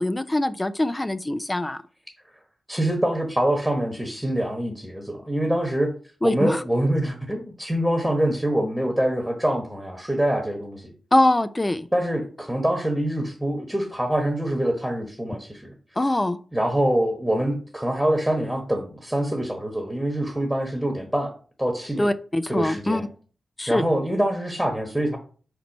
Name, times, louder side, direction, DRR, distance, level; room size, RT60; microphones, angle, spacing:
voice 1, 0.0-1.8 6.2-6.6 11.1-11.9 16.0-16.4 22.0-23.0 23.6-23.8, left 1 dB, 20° left, 12 dB, 0.4 m, -23 dB
voice 2, 2.7-5.9 6.2-10.9 11.9-15.7 16.5-21.3 21.6-22.1 22.5-23.0 23.7-25.2, right 1 dB, 5° right, 3 dB, 1.2 m, -25 dB
4.4 x 4.1 x 5.3 m, 0.41 s
cardioid pair, 60°, 0 cm